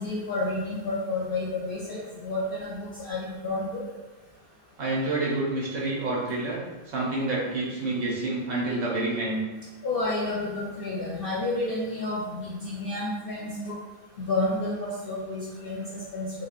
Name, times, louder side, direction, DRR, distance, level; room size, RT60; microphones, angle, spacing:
voice 1, 0.0-3.8 9.8-13.7 14.2-16.3, left 2 dB, 55° left, -5 dB, 0.7 m, -30 dB
voice 2, 4.8-6.6 6.9-9.4, right 2 dB, 85° right, -5 dB, 1.2 m, -28 dB
3.1 x 2.8 x 2.4 m, 1.2 s
omnidirectional pair, 1.3 m